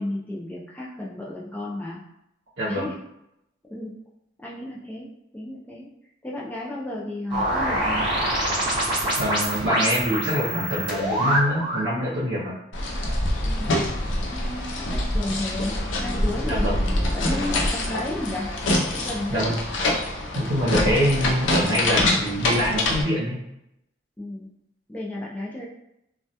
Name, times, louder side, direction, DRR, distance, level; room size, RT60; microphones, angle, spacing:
voice 1, 0.0-2.0 2.7-3.0 3.7-4.0 4.4-5.9 6.2-8.1 13.4-16.7 17.1-18.5 18.9-19.6 20.7-21.5 24.2-24.5 24.9-25.7, left 1 dB, 10° left, -4 dB, 0.4 m, -33 dB
voice 2, 2.6-2.9 9.2-12.6 16.5-16.9 19.3-19.6 20.3-23.4, equal, 75° right, -7 dB, 0.7 m, -25 dB
sound 1, 7.3-11.9, right 1 dB, 25° right, 0.7 m, -25 dB
sound 2, 12.7-23.0, left 1 dB, 80° left, 0.5 m, -25 dB
2.2 x 2.1 x 2.7 m, 0.83 s
head